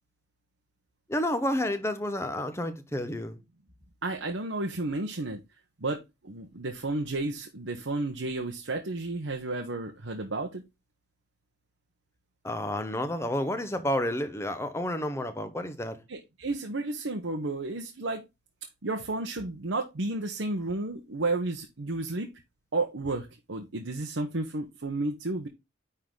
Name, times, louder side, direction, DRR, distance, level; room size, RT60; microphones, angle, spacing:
voice 1, 1.1-3.4 12.4-16.0, left 1 dB, 15° left, 0.8 m, -30 dB
voice 2, 4.0-5.4 5.8-10.6 16.1-18.2 18.8-22.3 22.7-25.5, right 2 dB, 80° right, 1.0 m, -32 dB
9.9 x 3.8 x 3.8 m
head